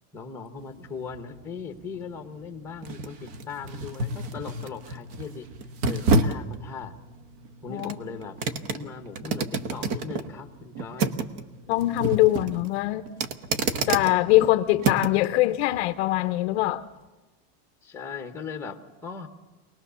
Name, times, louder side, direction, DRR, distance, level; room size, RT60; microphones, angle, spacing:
voice 1, 0.1-5.5 5.8-6.9 7.6-8.4 8.7-11.1 17.8-19.3, left 5 dB, 5° left, 0.9 m, -39 dB
sound 1, 0.6-15.3 15.7-15.9, right 3 dB, 40° right, 1.1 m, -30 dB
voice 2, 11.7-13.1 13.9-16.8, left 17 dB, 45° left, 0.7 m, -22 dB
24.5 x 19.5 x 6.9 m
supercardioid pair, 180°, 47 cm